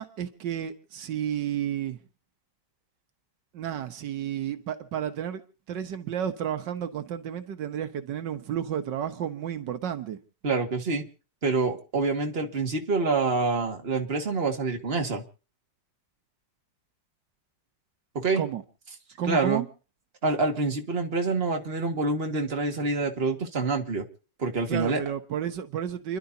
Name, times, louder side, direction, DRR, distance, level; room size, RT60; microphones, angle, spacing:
voice 1, 0.0-2.0 3.5-5.4 5.7-10.2 18.4-18.6 19.2-19.7 24.7-26.2, right 9 dB, 85° right, 1.7 m, -31 dB
voice 2, 10.4-11.1 11.4-15.2 18.1-18.4 19.3-19.6 20.2-24.0 24.4-25.0, right 3 dB, 35° right, 2.1 m, -26 dB
30.0 x 11.5 x 2.8 m
omnidirectional pair, 1.9 m